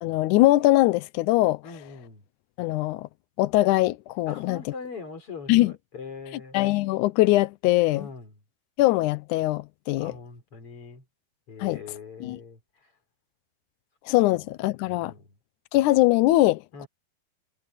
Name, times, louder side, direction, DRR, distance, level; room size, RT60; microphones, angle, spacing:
voice 1, 0.0-1.6 2.6-3.1 3.4-4.6 5.5-5.7 6.5-8.1 8.8-10.1 11.6-11.8 12.2-12.4 14.1-15.1 15.7-16.9, left 17 dB, 85° left, 1.8 m, -22 dB
voice 2, 1.6-2.2 4.3-6.6 7.9-8.4 10.0-11.0 11.5-12.9 14.3-14.5 15.0-15.4 16.7-16.9, left 5 dB, 40° left, 5.0 m, -42 dB
omnidirectional pair, 4.2 m